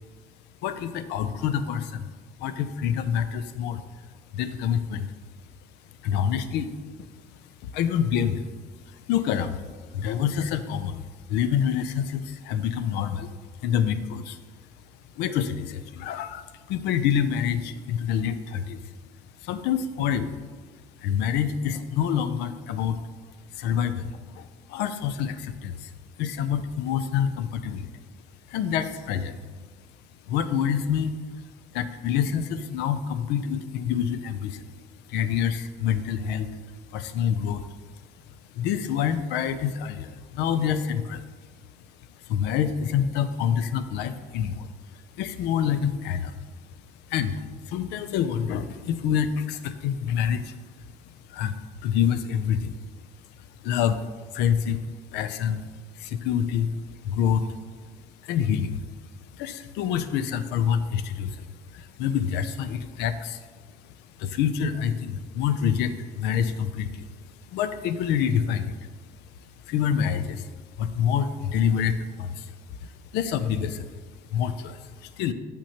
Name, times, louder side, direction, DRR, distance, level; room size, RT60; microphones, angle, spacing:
voice 1, 0.6-2.1 2.4-3.8 4.3-5.1 6.0-6.7 7.6-8.5 8.9-9.6 9.9-11.0 11.3-13.3 13.6-14.4 15.2-18.9 19.4-20.3 21.0-23.0 23.5-25.9 26.2-27.9 28.5-29.4 30.3-31.1 31.7-34.6 35.1-36.5 36.9-37.6 38.5-41.2 42.3-46.3 47.1-50.6 51.3-51.5 51.8-52.8 53.6-54.0 54.3-54.8 55.1-55.7 56.0-56.8 57.0-57.5 58.2-58.8 59.3-63.5 64.2-67.1 67.5-68.8 69.7-70.5 70.8-72.5 72.8-73.9 74.3-75.3, left 8 dB, 85° left, 12 dB, 0.4 m, -27 dB
6.6 x 6.0 x 2.9 m, 1.5 s
cardioid pair, 110°, 17 cm